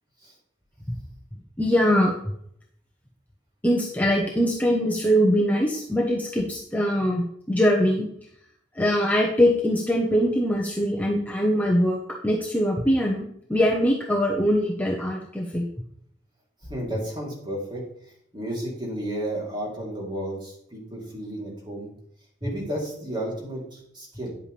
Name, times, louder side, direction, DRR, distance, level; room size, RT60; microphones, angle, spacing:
voice 1, 1.6-2.1 3.6-8.1 8.7-15.7, equal, 10° left, -2 dB, 1.0 m, -22 dB
voice 2, 16.6-17.8 18.3-21.9 22.4-24.3, right 1 dB, 25° right, -3 dB, 3.3 m, -32 dB
10.5 x 8.2 x 3.4 m, 0.71 s
head